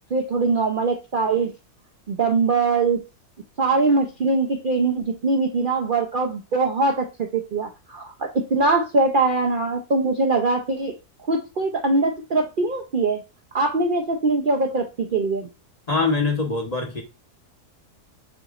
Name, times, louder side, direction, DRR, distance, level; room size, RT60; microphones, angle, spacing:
voice 1, 0.1-1.5 2.1-3.0 3.6-10.9 11.3-13.2 13.5-15.5, right 3 dB, 50° right, 0.6 m, -22 dB
voice 2, 15.9-17.0, left 3 dB, 30° left, 0.9 m, -23 dB
6.9 x 3.1 x 2.4 m
omnidirectional pair, 1.7 m